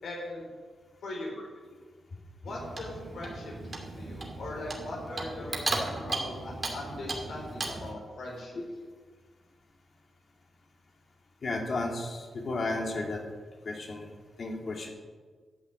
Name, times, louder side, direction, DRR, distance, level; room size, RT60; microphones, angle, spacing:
voice 1, 0.0-0.5 1.0-1.4 2.4-8.6, left 2 dB, 75° left, -2 dB, 4.1 m, -40 dB
Clock, 2.4-7.9, right 2 dB, 40° right, 2.7 m, -36 dB
voice 2, 11.4-13.2 13.6-14.1 14.4-14.9, left 2 dB, 55° left, 1 dB, 2.7 m, -33 dB
12.0 x 5.8 x 9.1 m, 1.5 s
cardioid pair, 60°, 0 cm